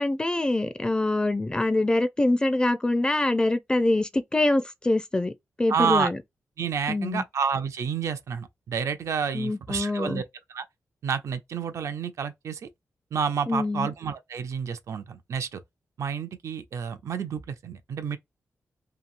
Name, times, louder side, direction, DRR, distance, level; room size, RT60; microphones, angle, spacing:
voice 1, 0.0-5.3 5.6-6.2 6.9-7.2 9.3-10.2 13.5-13.9, left 2 dB, 15° left, 0.4 m, -24 dB
voice 2, 5.7-6.1 6.6-10.2 10.5-10.7 11.0-12.7 13.1-15.6 16.0-18.2, right 6 dB, 75° right, 0.5 m, -29 dB
2.8 x 2.6 x 2.5 m
wide cardioid pair, 100°, 5 cm